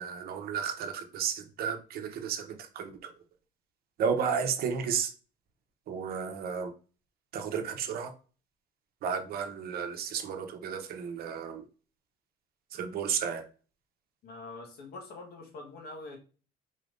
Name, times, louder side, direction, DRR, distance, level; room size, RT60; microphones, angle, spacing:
voice 1, 0.0-3.1 4.0-5.1 5.9-6.7 7.3-8.1 9.0-11.6 12.7-13.4, right 7 dB, 65° right, 5 dB, 0.8 m, -33 dB
voice 2, 14.2-16.2, left 2 dB, 70° left, 2 dB, 1.4 m, -44 dB
4.2 x 3.3 x 2.5 m, 0.37 s
cardioid pair, 110°, 17 cm